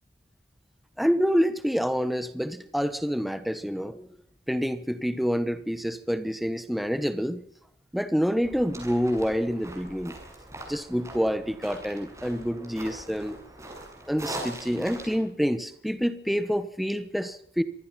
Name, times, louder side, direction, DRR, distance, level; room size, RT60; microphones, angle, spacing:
voice 1, 1.0-4.1 4.5-7.4 7.9-10.2 10.7-13.4 14.1-17.6, equal, ahead, 11 dB, 1.2 m, -27 dB
sound 1, 8.4-15.2, right 1 dB, 15° right, 7.4 m, -41 dB
25.5 x 20.0 x 5.8 m, 0.68 s
head